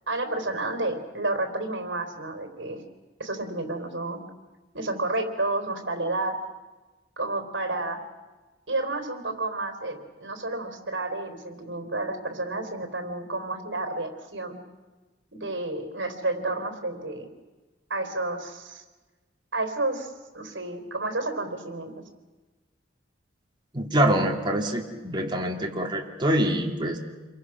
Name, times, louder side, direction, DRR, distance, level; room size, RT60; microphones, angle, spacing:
voice 1, 0.1-2.8 3.2-4.2 4.7-6.4 7.2-8.0 8.7-14.6 15.3-17.3 17.9-18.8 19.5-21.9, right 2 dB, 70° right, 6 dB, 4.0 m, -30 dB
voice 2, 23.7-27.0, right 1 dB, 25° right, 1 dB, 2.8 m, -25 dB
28.5 x 23.0 x 6.1 m, 1.2 s
head